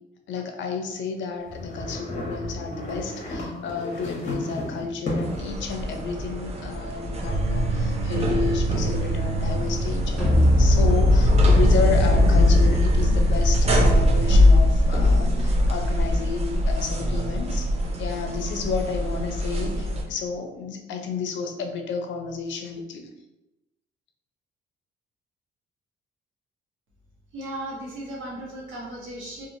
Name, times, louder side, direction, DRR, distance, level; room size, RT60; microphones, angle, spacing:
voice 1, 0.3-17.7 18.0-23.1, left 5 dB, 70° left, 4 dB, 0.5 m, -31 dB
sound 1, 1.4-5.5, left 1 dB, 40° left, 1.0 m, -33 dB
sound 2, 5.2-20.0, left 1 dB, 30° right, 0.6 m, -21 dB
sound 3, 10.2-15.6, equal, 5° right, 1.1 m, -26 dB
voice 2, 27.3-29.5, right 1 dB, 85° right, -3 dB, 1.0 m, -36 dB
2.9 x 2.4 x 2.6 m, 0.97 s
cardioid pair, 90°, 20 cm